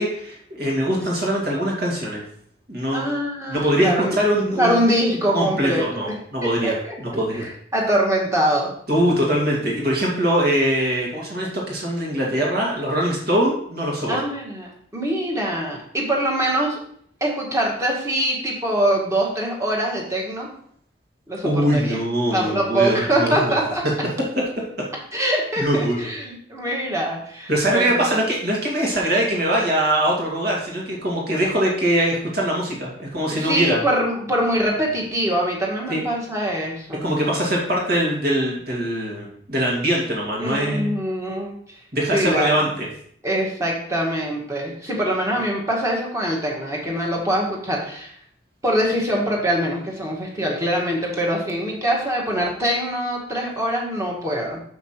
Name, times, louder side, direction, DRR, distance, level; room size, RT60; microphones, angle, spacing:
voice 1, 0.0-2.3 2.7-3.0 3.5-4.8 5.3-7.5 8.9-14.2 21.4-23.6 24.4-24.7 25.6-26.1 27.5-33.8 35.9-36.0 37.0-40.9 41.9-42.9, right 1 dB, 50° right, -2 dB, 2.1 m, -22 dB
voice 2, 2.9-4.2 4.6-6.1 6.4-6.9 7.3-8.7 14.1-16.8 17.2-20.5 21.3-22.0 22.3-23.8 25.1-28.0 33.3-37.1 40.4-41.6 42.1-42.6 43.2-48.1 48.6-54.6, right 1 dB, 15° right, -2 dB, 1.8 m, -23 dB
7.1 x 5.9 x 4.4 m, 0.65 s
head